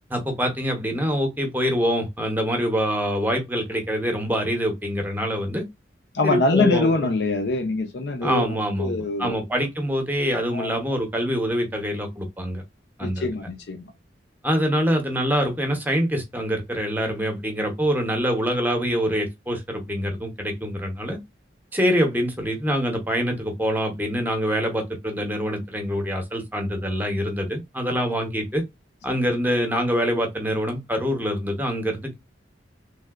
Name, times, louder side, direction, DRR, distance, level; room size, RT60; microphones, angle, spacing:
voice 1, 0.1-5.6 6.2-7.1 8.2-12.6 13.0-13.3 14.4-21.2 21.7-28.6 29.0-32.2, equal, 10° right, 0.7 m, -25 dB
voice 2, 6.1-9.4 10.5-10.7 13.0-13.9, left 3 dB, 65° left, 0.5 m, -24 dB
3.3 x 2.6 x 2.3 m
head